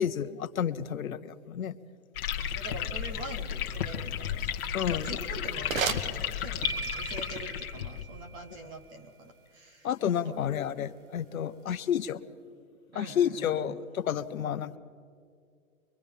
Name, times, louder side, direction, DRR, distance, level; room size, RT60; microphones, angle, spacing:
voice 1, 0.0-1.8 4.7-5.1 9.8-12.2 12.9-14.8, left 9 dB, 70° left, 13 dB, 1.0 m, -30 dB
sound 1, 2.1-8.0, left 9 dB, 40° left, 1.4 m, -33 dB
voice 2, 2.5-9.9 10.2-10.5 12.9-13.8, right 2 dB, 10° right, 5 dB, 0.6 m, -44 dB
sound 2, 5.5-6.9, right 6 dB, 70° right, 1.5 m, -35 dB
sound 3, 6.6-8.7, right 6 dB, 85° right, 1.2 m, -41 dB
24.5 x 22.0 x 5.4 m, 2.3 s
hypercardioid pair, 145°, 43 cm